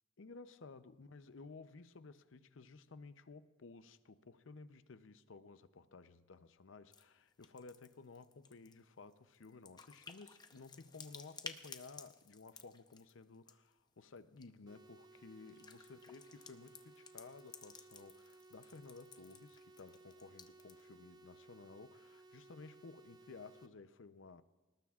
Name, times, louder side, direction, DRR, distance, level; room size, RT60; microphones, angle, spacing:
voice 1, 0.2-24.4, left 4 dB, 80° left, 0.6 m, -55 dB
sound 1, 6.9-7.0 7.3-13.7 14.2-14.5 15.3-20.9, left 5 dB, 20° left, 0.7 m, -55 dB
sound 2, 14.7-23.7, right 2 dB, 20° right, 0.7 m, -61 dB
28.0 x 19.0 x 2.4 m
head